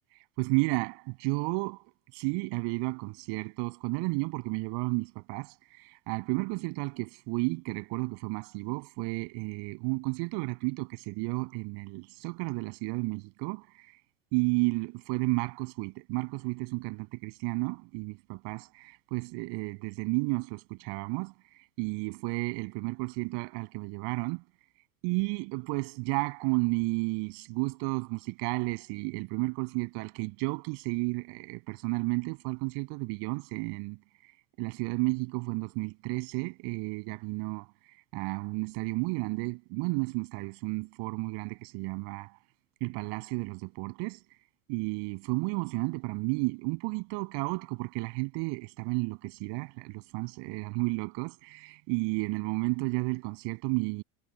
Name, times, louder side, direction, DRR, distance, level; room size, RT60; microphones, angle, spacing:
voice 1, 0.4-1.8 2.1-13.9 14.3-21.3 21.8-24.4 25.0-34.0 34.6-37.7 38.1-42.4 42.8-44.2 44.7-54.0, right 30 dB, 60° right, 7.8 m, -32 dB
hypercardioid pair, 105°, 45 cm